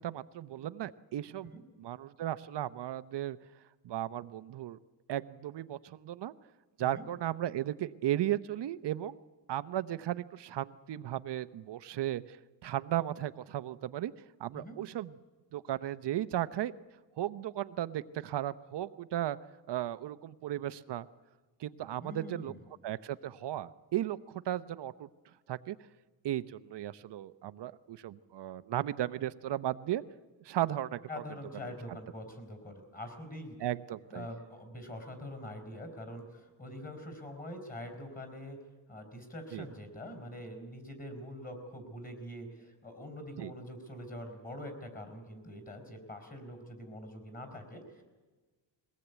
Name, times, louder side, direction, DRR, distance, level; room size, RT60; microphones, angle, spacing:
voice 1, 0.0-1.5 1.8-3.4 3.8-4.8 5.1-6.3 6.8-9.2 9.5-12.4 12.6-14.1 14.4-15.1 15.5-16.7 17.2-19.4 19.7-21.1 21.6-22.5 22.8-25.1 25.5-25.8 26.2-30.0 30.4-31.0 31.6-31.8 33.6-34.3 39.5-39.7 43.4-43.5, right 12 dB, 65° right, 14 dB, 0.8 m, -35 dB
voice 2, 22.0-22.6 31.1-33.6 34.1-38.6 38.9-48.0, left 1 dB, 20° left, 5 dB, 4.6 m, -44 dB
22.0 x 18.0 x 8.2 m, 1.3 s
wide cardioid pair, 145°, 45 cm